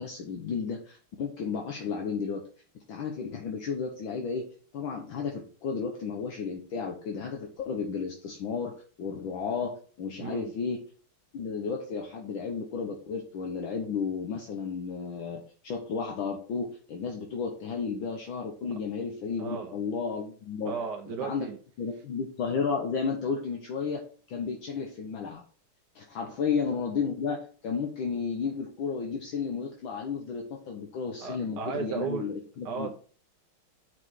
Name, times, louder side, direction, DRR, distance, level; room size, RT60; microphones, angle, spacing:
voice 1, 0.0-2.4 2.9-4.4 4.7-8.7 9.0-10.8 11.3-20.7 21.2-21.5 21.8-24.0 24.3-25.4 25.9-32.9, left 5 dB, 65° left, 2 dB, 1.7 m, -33 dB
voice 2, 10.2-10.5 19.4-19.7 20.6-21.6 31.2-32.3 32.6-32.9, right 6 dB, 60° right, 2 dB, 1.3 m, -34 dB
6.2 x 5.0 x 6.1 m, 0.43 s
omnidirectional pair, 2.4 m